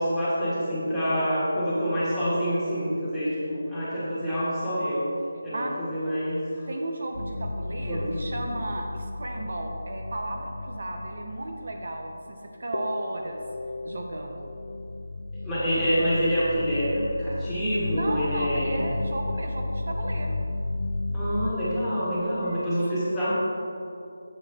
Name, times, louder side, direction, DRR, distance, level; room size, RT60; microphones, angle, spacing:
voice 1, 0.0-5.1 5.4-6.7 7.7-8.2 15.3-18.8 21.1-23.3, equal, 5° left, -14 dB, 1.6 m, -27 dB
voice 2, 6.7-13.4 13.8-14.5 17.9-20.4 22.4-22.8, right 1 dB, 60° right, 2 dB, 0.7 m, -34 dB
sound 1, 7.1-12.3 12.7-21.5, left 2 dB, 75° left, 0.4 m, -33 dB
6.8 x 6.7 x 3.4 m, 2.6 s
figure-of-eight pair, 165°, 0 cm